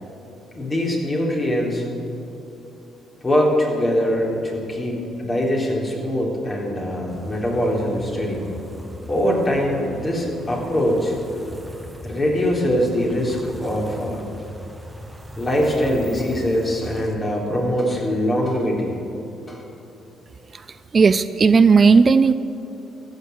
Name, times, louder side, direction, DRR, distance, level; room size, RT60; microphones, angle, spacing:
voice 1, 0.5-1.8 3.2-8.5 9.1-11.2 12.0-14.2 15.4-19.0 19.5-19.6, equal, 30° left, -2 dB, 3.5 m, -22 dB
sound 1, 7.1-17.2, equal, 5° right, 1.3 m, -39 dB
voice 2, 20.9-22.3, right 5 dB, 40° right, 13 dB, 0.4 m, -14 dB
14.5 x 6.6 x 8.3 m, 2.8 s
hypercardioid pair, 50°, 0 cm